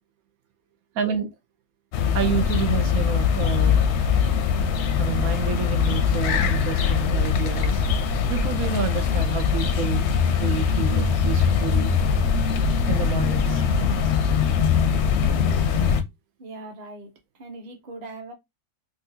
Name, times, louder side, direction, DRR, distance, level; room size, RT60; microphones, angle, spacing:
voice 1, 0.9-1.3 2.1-3.9 5.0-7.8 8.3-11.9 12.9-13.6, right 8 dB, 75° right, 1.1 m, -29 dB
sound 1, 1.9-16.0, left 6 dB, 65° left, 0.7 m, -22 dB
voice 2, 16.4-18.3, right 2 dB, 35° right, 0.8 m, -40 dB
3.9 x 2.4 x 2.6 m
omnidirectional pair, 1.5 m